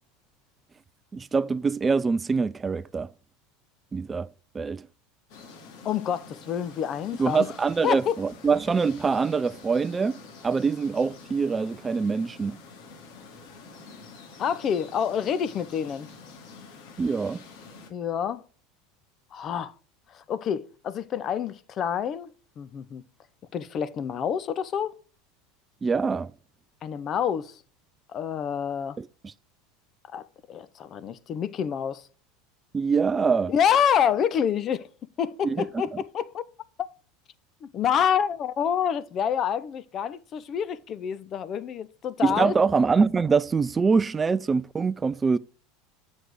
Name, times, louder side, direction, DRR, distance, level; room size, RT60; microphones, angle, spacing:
voice 1, 1.1-3.1 3.9-4.3 4.5-4.9 7.2-12.6 17.0-17.4 25.8-26.3 29.0-29.3 32.7-33.5 35.4-35.8 42.2-45.4, right 5 dB, 20° right, 0.3 m, -24 dB
sound 1, 5.3-17.9, left 4 dB, 65° left, 2.2 m, -47 dB
voice 2, 5.8-7.5 7.8-8.2 14.4-16.1 17.9-18.4 19.3-19.7 20.1-22.3 22.6-23.0 23.5-24.9 26.8-27.6 28.1-29.0 30.1-32.1 33.5-34.9 35.2-36.4 37.6-42.5, left 8 dB, 40° left, 0.7 m, -27 dB
8.0 x 6.3 x 4.8 m
hypercardioid pair, 95°, 0 cm